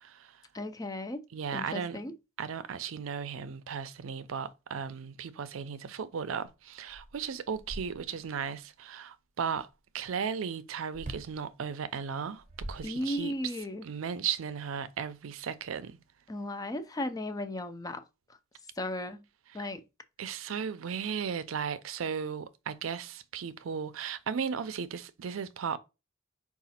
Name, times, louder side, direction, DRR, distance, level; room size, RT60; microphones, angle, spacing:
voice 1, 0.0-0.4 1.3-2.0 2.4-9.7 9.9-13.3 13.8-16.0 19.5-19.7 20.2-25.8, right 7 dB, 80° right, 0.4 m, -36 dB
voice 2, 0.5-1.2 1.5-2.1 12.8-13.9 16.3-18.0 18.8-19.2 19.5-19.8, left 1 dB, 20° left, 0.4 m, -35 dB
sound 1, 6.4-6.5 6.9-8.4 10.9-11.4 12.2-13.4, right 1 dB, 40° right, 0.7 m, -43 dB
4.8 x 2.4 x 4.2 m
head